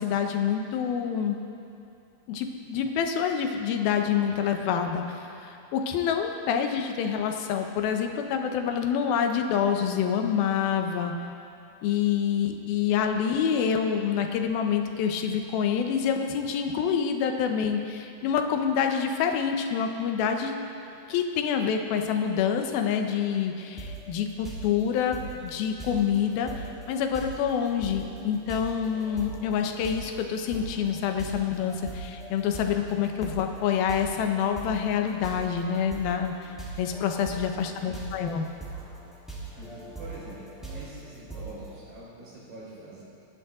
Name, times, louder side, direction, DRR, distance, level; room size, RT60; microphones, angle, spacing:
voice 1, 0.0-1.4 2.3-11.1 11.8-20.5 21.1-36.5 36.8-38.5, left 7 dB, 75° left, 4 dB, 2.7 m, -27 dB
sound 1, 23.8-24.1 24.4-41.8, right 3 dB, ahead, 2.9 m, -41 dB
voice 2, 39.5-43.0, right 2 dB, 65° right, -7 dB, 5.9 m, -44 dB
27.0 x 11.0 x 3.7 m, 2.6 s
omnidirectional pair, 4.7 m